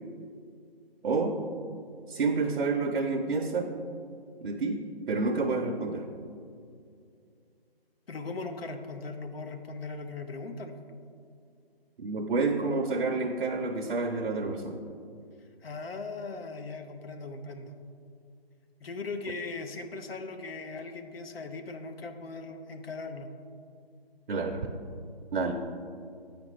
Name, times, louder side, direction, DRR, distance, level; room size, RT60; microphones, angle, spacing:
voice 1, 1.0-1.4 2.1-3.7 4.4-4.8 5.1-6.1 12.0-14.8 24.3-24.7 25.3-25.5, right 3 dB, 70° right, 3 dB, 0.6 m, -29 dB
voice 2, 8.1-10.8 15.6-17.7 18.8-23.3, left 3 dB, 70° left, 7 dB, 0.7 m, -39 dB
8.8 x 5.1 x 3.0 m, 2.3 s
figure-of-eight pair, 160°, 31 cm